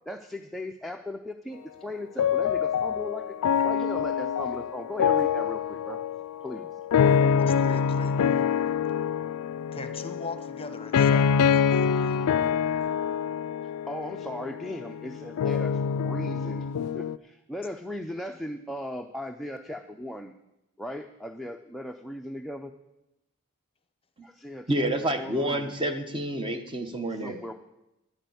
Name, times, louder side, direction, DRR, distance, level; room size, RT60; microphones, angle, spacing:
voice 1, 0.0-3.3 3.6-6.0 6.4-6.7 13.9-16.7 16.9-20.3 20.8-22.7 24.2-25.7 27.1-27.5, left 1 dB, ahead, 3 dB, 0.5 m, -37 dB
sound 1, 2.2-17.2, left 7 dB, 90° left, 0.4 m, -26 dB
voice 2, 7.2-8.1 9.7-12.2, left 3 dB, 25° left, 9 dB, 0.9 m, -39 dB
voice 3, 24.7-27.5, right 1 dB, 25° right, 8 dB, 1.0 m, -29 dB
11.0 x 6.7 x 9.4 m, 0.92 s
head